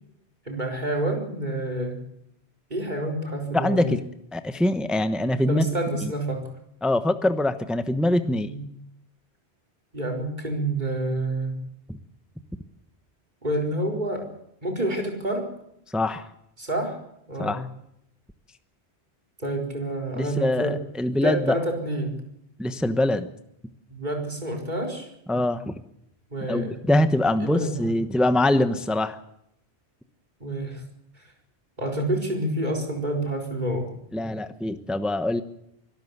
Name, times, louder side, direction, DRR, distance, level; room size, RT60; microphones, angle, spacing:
voice 1, 0.4-2.0 2.7-4.0 5.5-6.5 8.3-8.6 9.9-11.6 13.4-14.2 14.6-15.5 16.6-17.0 17.3-17.6 19.4-20.8 21.2-22.2 23.9-25.1 26.3-26.7 27.4-27.9 30.4-30.8 31.8-33.9, right 1 dB, 45° right, 1 dB, 4.6 m, -28 dB
voice 2, 3.5-4.0 4.3-5.7 6.0-6.1 6.8-8.5 11.9-12.0 15.9-16.3 17.4-17.6 20.2-21.6 22.6-23.3 25.3-25.7 26.5-29.2 34.1-35.4, left 1 dB, ahead, 10 dB, 0.9 m, -23 dB
24.5 x 13.0 x 8.2 m, 0.78 s
omnidirectional pair, 1.1 m